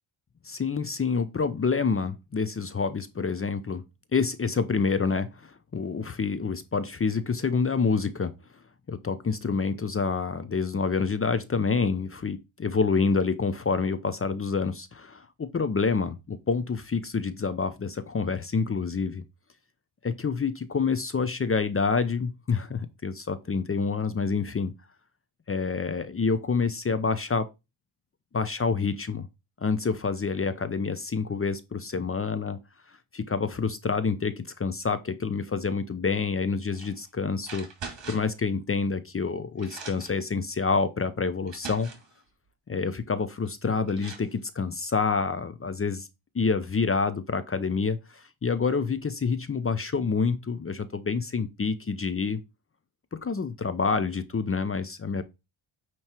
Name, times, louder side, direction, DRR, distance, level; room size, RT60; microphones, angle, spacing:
voice 1, 0.4-3.8 4.1-8.3 8.9-19.2 20.0-24.7 25.5-27.5 28.3-29.3 29.6-32.6 33.1-37.7 38.1-41.9 42.7-46.1 46.3-52.4 53.1-55.2, left 5 dB, 25° left, 0.7 m, -27 dB
sound 1, 36.7-37.0 37.4-38.4 39.2-39.3 39.6-40.2 41.0-41.1 41.5-42.1 43.5-43.6 43.9-44.3, right 5 dB, 60° right, 2.3 m, -42 dB
8.9 x 3.1 x 4.5 m
cardioid pair, 95°, 49 cm